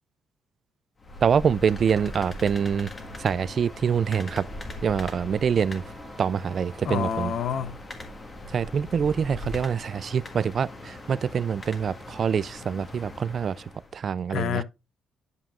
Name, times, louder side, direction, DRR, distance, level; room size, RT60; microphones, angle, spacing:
sound 1, 1.0-14.0, left 2 dB, 30° left, 1.6 m, -40 dB
voice 1, 1.2-2.9 3.2-4.5 4.8-5.8 6.2-7.3 8.5-13.6 13.9-14.6, right 7 dB, 50° right, 0.3 m, -25 dB
Wind instrument woodwind instrument, 2.9-7.1, right 4 dB, 30° right, 1.3 m, -52 dB
voice 2, 6.8-7.8 14.3-14.6, left 8 dB, 70° left, 0.7 m, -28 dB
11.0 x 5.6 x 2.4 m
cardioid pair, 90°, 0 cm